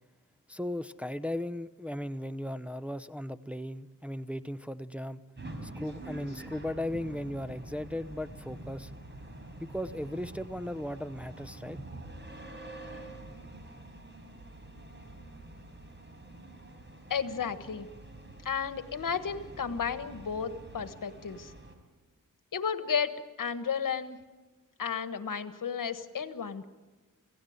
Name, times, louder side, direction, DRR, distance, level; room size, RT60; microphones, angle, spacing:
voice 1, 0.5-5.2 5.6-8.9 9.6-11.8, left 1 dB, 5° right, 11 dB, 0.7 m, -37 dB
sound 1, 5.4-21.8, right 1 dB, 35° right, 4.6 m, -46 dB
voice 2, 17.1-17.9 18.4-21.5 22.5-24.2 24.8-26.6, left 6 dB, 80° left, 10 dB, 1.4 m, -33 dB
27.0 x 16.5 x 9.5 m, 1.2 s
wide cardioid pair, 75°, 32 cm